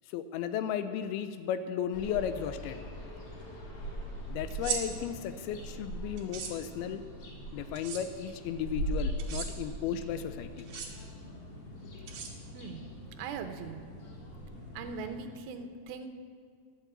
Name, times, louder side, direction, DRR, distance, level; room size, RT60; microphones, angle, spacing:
voice 1, 0.1-2.8 4.3-7.0 7.5-10.7 12.0-12.1, left 9 dB, 85° left, 10 dB, 2.4 m, -35 dB
sound 1, 1.9-15.2, right 1 dB, 55° left, 2.9 m, -41 dB
sound 2, 4.5-4.8 6.2-6.5 7.7-8.0 9.2-9.5 10.6-10.9 12.1-12.7, right 7 dB, 55° right, 2.6 m, -36 dB
voice 2, 12.5-12.9 13.2-13.8 14.7-16.1, right 5 dB, 75° right, 6 dB, 2.6 m, -40 dB
11.5 x 7.4 x 7.9 m, 2.1 s
omnidirectional pair, 4.5 m